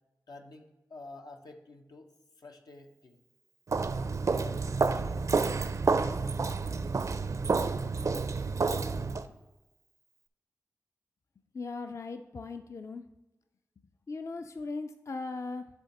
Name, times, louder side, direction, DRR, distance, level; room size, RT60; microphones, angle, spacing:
voice 1, 0.3-2.1 2.4-3.2 4.4-5.4, left 2 dB, 85° left, 3 dB, 0.7 m, -50 dB
Walk footsteps, 3.7-9.3, right 4 dB, 55° right, 0.4 m, -29 dB
voice 2, 11.5-13.0 14.1-15.7, left 3 dB, 45° left, 8 dB, 0.4 m, -38 dB
10.0 x 3.5 x 4.2 m, 1.1 s
cardioid pair, 50°, 7 cm